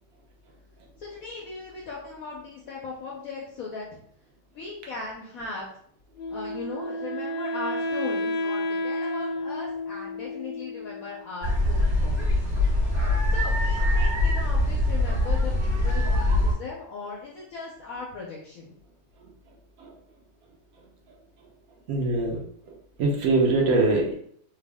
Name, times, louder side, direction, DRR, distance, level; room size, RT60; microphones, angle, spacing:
voice 1, 1.0-4.0 4.5-5.7 6.3-12.3 13.3-18.7, left 4 dB, 65° left, -3 dB, 0.9 m, -38 dB
Wind instrument woodwind instrument, 6.2-11.2, left 1 dB, 85° left, 1.3 m, -31 dB
sound 1, 11.4-16.5, left 1 dB, 30° right, 1.6 m, -23 dB
voice 2, 21.9-22.4 23.0-24.1, right 2 dB, 60° right, 0 dB, 1.0 m, -22 dB
3.4 x 2.3 x 3.3 m, 0.64 s
omnidirectional pair, 1.9 m